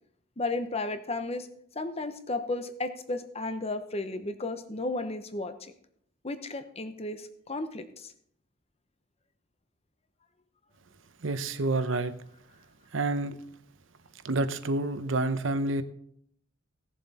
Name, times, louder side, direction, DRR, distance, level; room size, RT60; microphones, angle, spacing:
voice 1, 0.4-1.5 1.7-5.7 6.2-8.1, left 2 dB, 30° left, 9 dB, 0.9 m, -34 dB
voice 2, 11.2-12.1 12.9-13.4 14.2-15.8, right 2 dB, 70° right, 11 dB, 0.8 m, -28 dB
16.5 x 7.3 x 4.2 m, 0.68 s
head